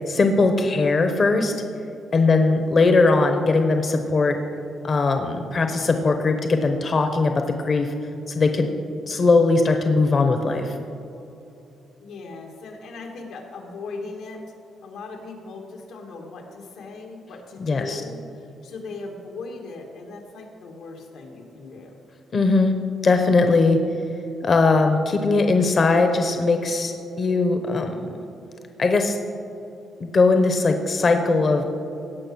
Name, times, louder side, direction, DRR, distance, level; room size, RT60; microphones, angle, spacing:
voice 1, 0.1-1.5 2.1-4.4 4.8-7.9 8.3-8.7 9.1-10.7 17.6-18.0 22.3-22.8 23.0-23.8 24.4-28.2 28.8-29.2 30.0-31.6, left 3 dB, 35° left, 5 dB, 0.8 m, -20 dB
voice 2, 12.0-14.4 14.8-22.0, left 3 dB, 90° left, 1 dB, 1.9 m, -38 dB
17.5 x 6.2 x 6.2 m, 2.9 s
cardioid pair, 130°, 0 cm